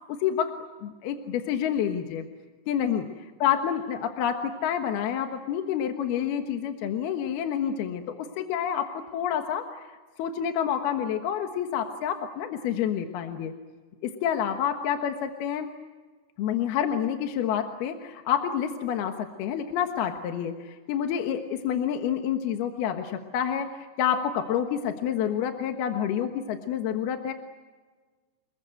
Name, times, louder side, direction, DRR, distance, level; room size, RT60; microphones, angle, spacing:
voice 1, 0.1-0.5 0.8-2.2 2.7-3.1 3.4-9.8 10.2-13.5 14.0-15.7 16.4-27.3, left 9 dB, 70° left, 5 dB, 3.1 m, -28 dB
28.5 x 21.5 x 9.1 m, 1.4 s
omnidirectional pair, 4.8 m